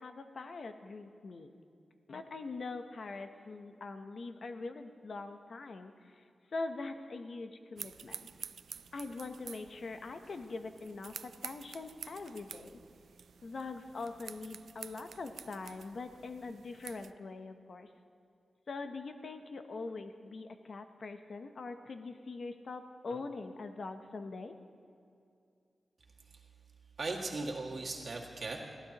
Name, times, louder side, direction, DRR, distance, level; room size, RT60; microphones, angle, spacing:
voice 1, 0.0-1.5 2.1-6.2 6.5-8.3 8.9-12.8 13.4-17.9 18.7-24.5, left 3 dB, 60° left, 7 dB, 0.8 m, -43 dB
sound 1, 7.8-17.1, right 7 dB, 90° right, 0.3 m, -49 dB
voice 2, 27.0-28.6, right 3 dB, 55° right, -1 dB, 2.0 m, -37 dB
22.0 x 15.0 x 3.0 m, 2.4 s
wide cardioid pair, 115°, 0 cm